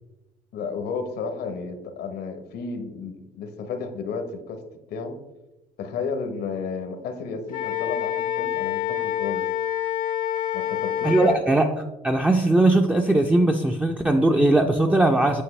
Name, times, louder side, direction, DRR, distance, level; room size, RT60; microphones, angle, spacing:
voice 1, 0.5-4.6 4.9-5.2 5.8-9.5 10.5-11.4, left 5 dB, 75° left, 6 dB, 1.0 m, -32 dB
Wind instrument woodwind instrument, 7.5-11.4, left 10 dB, 55° left, 0.6 m, -27 dB
voice 2, 11.0-11.7 12.0-15.4, right 2 dB, 10° right, 2 dB, 0.5 m, -19 dB
8.5 x 5.2 x 3.2 m, 0.98 s
cardioid pair, 110°, 17 cm